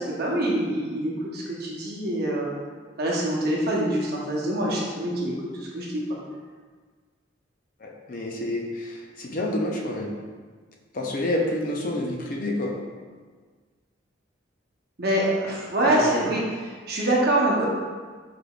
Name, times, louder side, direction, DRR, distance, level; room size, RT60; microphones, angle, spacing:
voice 1, 0.0-2.5 3.0-6.0 15.0-16.4 16.9-17.7, right 1 dB, 50° right, -3 dB, 0.8 m, -25 dB
voice 2, 7.8-10.1 10.9-12.8 15.9-16.3, left 1 dB, 40° left, 0 dB, 0.5 m, -28 dB
4.8 x 3.6 x 2.3 m, 1.5 s
head